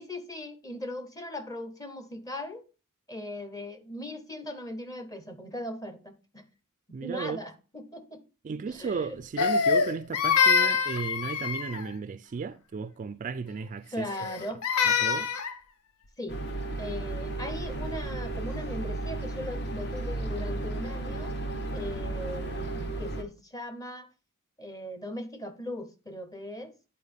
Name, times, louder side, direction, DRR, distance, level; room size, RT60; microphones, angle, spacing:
voice 1, 0.0-2.6 3.1-6.4 7.0-8.2 8.7-9.2 13.9-14.6 16.2-16.4 16.8-21.3 21.7-24.1 24.6-26.7, left 1 dB, 15° left, 0.8 m, -39 dB
voice 2, 6.9-7.4 8.4-14.4 14.8-15.3, right 5 dB, 35° right, 0.3 m, -35 dB
Crying sobbing, 9.4-11.9 14.1-15.6, left 6 dB, 85° left, 0.7 m, -25 dB
sound 1, 16.3-23.2, right 2 dB, 50° left, 1.1 m, -34 dB
9.8 x 4.4 x 3.4 m
head